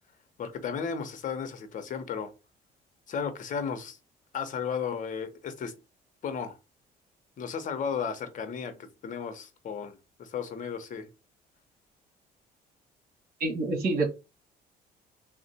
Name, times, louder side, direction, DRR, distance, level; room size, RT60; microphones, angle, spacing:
voice 1, 0.4-2.3 3.1-4.0 4.3-5.7 6.2-6.6 7.4-11.1, left 6 dB, 50° left, 0.9 m, -34 dB
voice 2, 13.4-14.1, right 3 dB, 60° right, 2.1 m, -27 dB
3.6 x 2.4 x 4.2 m
cardioid pair, 110°, 17 cm